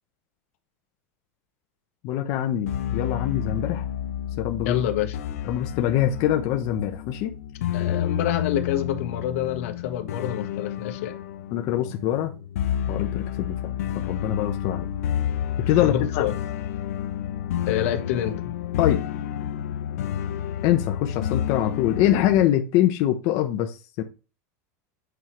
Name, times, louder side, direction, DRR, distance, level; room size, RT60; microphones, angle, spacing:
voice 1, 2.0-3.9 4.4-4.8 5.4-7.3 11.5-12.3 12.9-14.9 15.7-16.3 18.8-19.0 20.6-24.0, left 12 dB, 50° left, 1.0 m, -24 dB
sound 1, 2.7-22.5, left 10 dB, 90° left, 0.8 m, -30 dB
voice 2, 4.6-5.2 7.7-11.2 15.9-16.3 17.7-18.5, left 11 dB, 70° left, 1.5 m, -27 dB
8.2 x 4.6 x 3.3 m
supercardioid pair, 145°, 8 cm